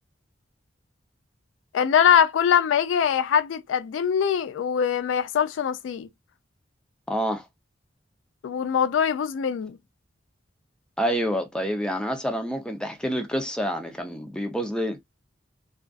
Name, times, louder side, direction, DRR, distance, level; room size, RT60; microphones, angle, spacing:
voice 1, 1.7-6.1 8.4-9.8, left 8 dB, 90° left, 0.3 m, -22 dB
voice 2, 7.1-7.4 11.0-15.0, equal, 5° left, 0.5 m, -27 dB
2.5 x 2.4 x 2.2 m
head